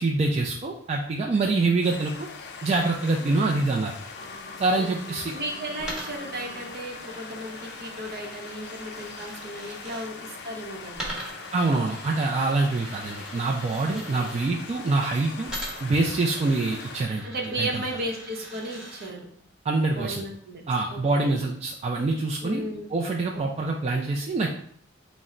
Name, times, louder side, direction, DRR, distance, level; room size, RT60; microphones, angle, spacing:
voice 1, 0.0-2.1 2.6-3.9 4.6-5.3 11.5-15.5 15.8-17.3 17.6-17.8 19.6-20.2 20.7-24.5, right 3 dB, 30° right, -1 dB, 0.3 m, -25 dB
sound 1, 1.8-17.0, left 4 dB, 55° left, 0.4 m, -42 dB
voice 2, 3.2-3.7 4.7-11.2 13.9-14.3 17.2-19.3 19.9-20.6 20.9-21.3 22.4-22.9 23.3-23.7, right 1 dB, 50° right, 1 dB, 0.8 m, -35 dB
sound 2, 4.2-6.7, left 1 dB, 35° left, 1.1 m, -45 dB
Coin (dropping), 5.8-10.1 10.9-14.5 15.5-19.1, equal, 5° right, 1.1 m, -41 dB
3.7 x 2.1 x 4.2 m, 0.63 s
head